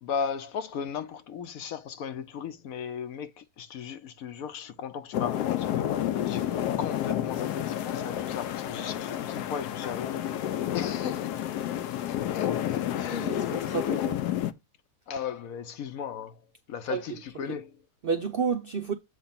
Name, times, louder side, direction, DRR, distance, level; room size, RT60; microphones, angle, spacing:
voice 1, 0.0-6.5 6.8-11.4 12.1-13.4 15.1-17.9, left 7 dB, 70° left, 1.0 m, -36 dB
sound 1, 5.1-14.5, left 11 dB, 85° left, 1.2 m, -30 dB
voice 2, 13.7-14.2 16.9-17.0 18.0-18.9, right 6 dB, 80° right, 0.5 m, -30 dB
7.9 x 3.1 x 5.7 m
omnidirectional pair, 1.7 m